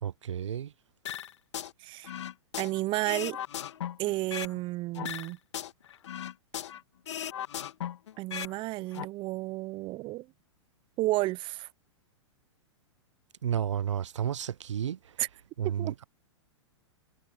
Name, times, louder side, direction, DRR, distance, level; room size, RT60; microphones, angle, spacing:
voice 1, 0.0-0.7 13.4-15.2 15.6-16.0, right 9 dB, 75° right, 0.8 m, -32 dB
sound 1, 1.1-1.7 2.0-4.6 4.9-6.8 7.1-8.5 8.8-9.0, left 10 dB, 70° left, 2.3 m, -37 dB
voice 2, 1.8-2.2 2.6-3.4 4.0-5.4 8.2-10.3 11.0-11.7 15.2-15.3 15.6-16.0, right 19 dB, 35° right, 0.8 m, -32 dB
hypercardioid pair, 110°, 16 cm